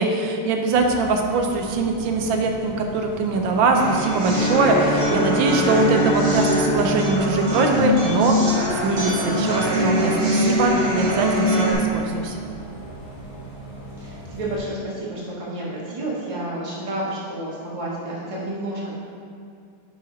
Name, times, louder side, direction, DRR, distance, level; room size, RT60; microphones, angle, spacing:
voice 1, 0.0-8.4 8.8-12.4, right 3 dB, 75° right, 3 dB, 1.4 m, -22 dB
Bus, 0.7-14.6, equal, 30° left, 1.2 m, -38 dB
sound 1, 3.7-11.7, equal, 50° right, 1.9 m, -23 dB
Bowed string instrument, 4.2-8.5, left 1 dB, 50° left, 1.2 m, -26 dB
voice 2, 14.0-18.9, right 1 dB, 20° right, -6 dB, 1.1 m, -30 dB
6.7 x 4.0 x 5.0 m, 2.3 s
omnidirectional pair, 2.3 m